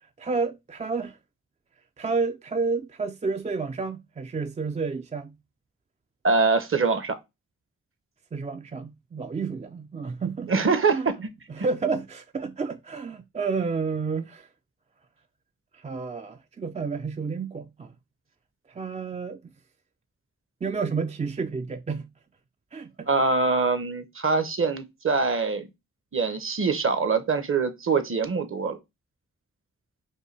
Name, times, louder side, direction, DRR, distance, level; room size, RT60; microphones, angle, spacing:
voice 1, 0.2-1.2 2.0-5.3 8.3-10.5 10.9-11.1 11.5-14.5 15.7-17.9 18.7-19.4 20.6-22.1 22.7-23.1, right 4 dB, 25° right, 0.3 m, -30 dB
voice 2, 6.2-7.2 10.5-11.0 11.6-11.7 23.1-25.7 26.1-28.8, right 4 dB, 45° right, 0.8 m, -24 dB
5.4 x 2.2 x 3.1 m
cardioid pair, 65°, 31 cm